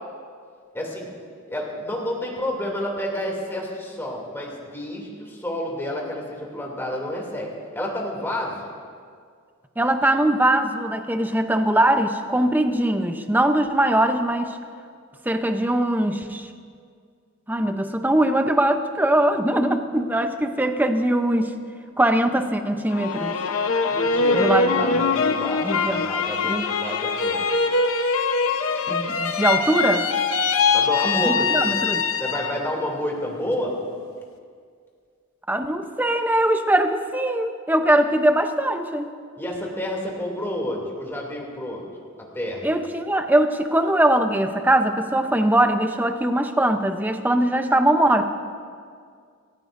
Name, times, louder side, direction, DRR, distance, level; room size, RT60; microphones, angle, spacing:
voice 1, 0.7-1.1 1.5-8.6 23.9-27.4 30.7-31.8 32.2-33.8 39.4-41.8 42.2-42.7, left 1 dB, 10° left, -2 dB, 2.8 m, -30 dB
voice 2, 9.8-14.6 15.2-16.5 17.5-21.5 22.0-23.4 24.3-25.0 25.6-26.1 26.5-26.6 28.9-30.1 31.0-32.0 35.5-39.1 42.6-48.3, right 1 dB, 10° right, 7 dB, 0.7 m, -21 dB
sound 1, 22.9-32.7 33.1-33.8, left 4 dB, 85° left, 0.9 m, -23 dB
27.0 x 15.0 x 2.6 m, 2.1 s
head